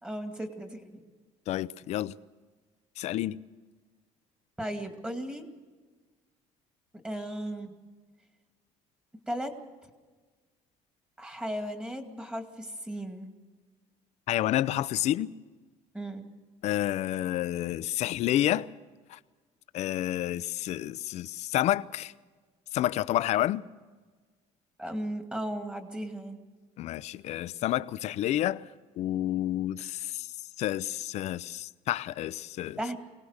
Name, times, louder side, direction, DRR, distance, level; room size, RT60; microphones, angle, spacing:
voice 1, 0.0-1.1 4.6-5.5 7.0-7.8 9.3-9.5 11.2-13.3 15.9-16.3 24.8-26.4 32.8-33.0, right 1 dB, 10° right, 2.3 m, -36 dB
voice 2, 1.5-2.1 3.0-3.4 14.3-15.3 16.6-18.7 19.1-19.2 19.7-22.1 22.7-23.6 26.8-28.7 29.0-30.3 30.6-32.8, left 13 dB, 60° left, 0.6 m, -29 dB
24.0 x 18.5 x 6.6 m
cardioid pair, 145°, 13 cm